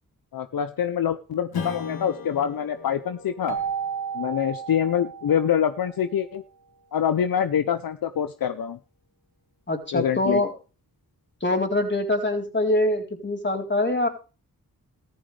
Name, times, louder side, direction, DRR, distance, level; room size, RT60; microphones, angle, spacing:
voice 1, 0.3-3.6 4.1-6.4 6.9-8.8 9.9-10.4, left 9 dB, 75° left, 11 dB, 0.8 m, -25 dB
Strum, 1.5-6.5, left 5 dB, 90° left, 4.0 m, -39 dB
Keyboard (musical), 3.5-6.1, right 7 dB, 55° right, 1.7 m, -33 dB
voice 2, 9.7-10.5 11.4-14.1, left 2 dB, 30° left, 2 dB, 3.9 m, -24 dB
14.5 x 13.0 x 3.4 m, 0.34 s
cardioid pair, 55°, 35 cm